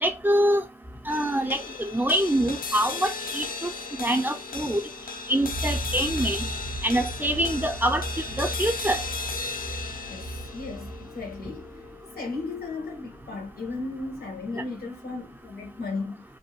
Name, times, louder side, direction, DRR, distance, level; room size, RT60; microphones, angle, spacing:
voice 1, 0.0-0.6 1.1-3.7 4.0-4.8 5.3-6.4 6.8-8.0 8.4-9.0, right 1 dB, 10° right, 0.5 m, -25 dB
sound 1, 1.1-13.6, left 4 dB, 65° left, 0.4 m, -36 dB
sound 2, 5.4-11.9, right 1 dB, 90° right, 0.5 m, -36 dB
voice 2, 10.1-16.2, left 3 dB, 90° left, 1.0 m, -35 dB
2.6 x 2.0 x 2.8 m
wide cardioid pair, 65°, 15 cm